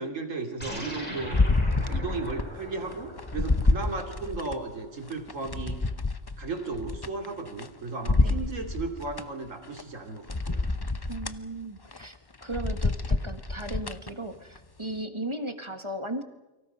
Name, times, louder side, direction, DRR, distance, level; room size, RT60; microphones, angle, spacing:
voice 1, 0.0-1.4 1.8-5.8 6.4-10.7, right 3 dB, 75° right, 4 dB, 3.1 m, -35 dB
sound 1, 0.6-5.3, equal, 5° left, 6.6 m, -41 dB
sound 2, 1.3-2.5 2.9-4.6 5.1-7.7 8.0-9.2 9.8-9.9 10.3-11.4 11.8-12.0 12.4-14.1 14.6-14.7, left 3 dB, 20° left, 0.7 m, -27 dB
voice 2, 11.1-12.1 12.4-16.2, right 1 dB, 20° right, 7 dB, 1.5 m, -36 dB
29.5 x 24.5 x 5.6 m, 1.1 s
omnidirectional pair, 1.4 m